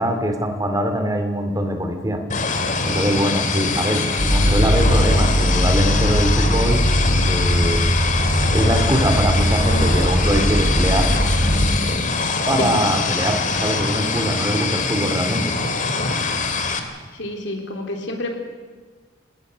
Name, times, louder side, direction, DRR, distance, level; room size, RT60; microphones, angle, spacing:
voice 1, 0.0-2.2 2.8-6.9 7.3-8.1 8.5-11.1 12.4-15.5, right 1 dB, 15° right, 6 dB, 2.6 m, -22 dB
sound 1, 2.3-16.8, left 4 dB, 40° left, 2.2 m, -24 dB
sound 2, 4.2-11.7, equal, 50° right, 4.2 m, -19 dB
voice 2, 17.1-18.4, left 1 dB, 60° left, 4 dB, 3.7 m, -28 dB
27.0 x 19.5 x 6.3 m, 1.5 s
head